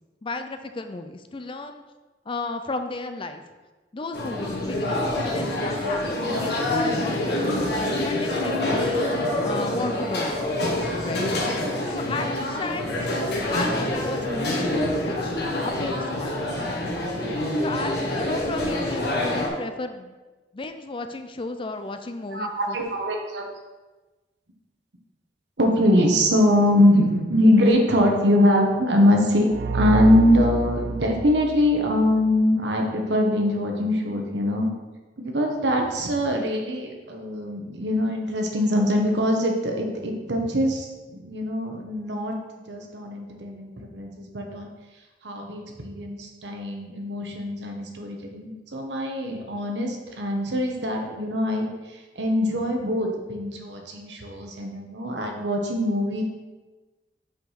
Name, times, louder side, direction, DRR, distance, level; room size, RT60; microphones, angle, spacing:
voice 1, 0.2-1.8 2.3-3.4 3.9-7.4 8.0-9.1 9.4-11.3 11.8-14.7 15.0-15.3 15.6-16.7 17.6-20.1 20.5-22.8, left 3 dB, 30° left, 8 dB, 0.5 m, -34 dB
sound 1, 4.1-19.5, left 1 dB, 65° left, 1.4 m, -26 dB
voice 2, 22.3-23.4 25.6-34.7 35.2-42.4 42.7-44.7 45.2-56.2, left 1 dB, 85° right, 2 dB, 1.2 m, -23 dB
sound 2, 29.5-32.3, right 4 dB, 65° right, 0.3 m, -27 dB
5.6 x 5.0 x 5.7 m, 1.2 s
head